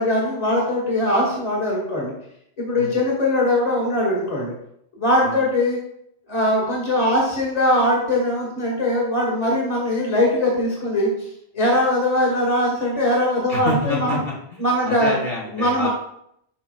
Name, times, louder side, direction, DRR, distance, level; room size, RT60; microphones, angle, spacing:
voice 1, 0.0-2.1 2.6-4.5 5.0-5.8 6.3-11.1 11.5-14.2 14.6-15.1 15.5-15.9, left 1 dB, 35° left, -3 dB, 2.2 m, -21 dB
voice 2, 13.5-15.9, left 2 dB, 60° left, -5 dB, 2.4 m, -28 dB
12.5 x 5.0 x 2.4 m, 0.74 s
omnidirectional pair, 1.1 m